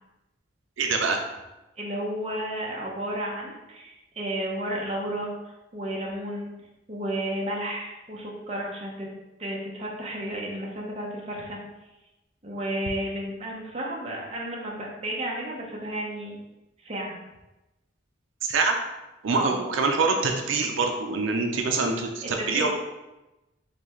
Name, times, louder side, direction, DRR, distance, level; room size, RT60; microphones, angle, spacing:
voice 1, 0.8-1.2 18.4-18.8 19.2-22.7, right 4 dB, 90° right, 3 dB, 0.5 m, -25 dB
voice 2, 1.8-6.5 6.9-9.1 9.4-11.6 12.4-16.4 16.8-17.2 19.3-19.6 22.4-22.7, right 1 dB, 35° right, -2 dB, 0.7 m, -32 dB
3.9 x 3.2 x 3.0 m, 1.0 s
head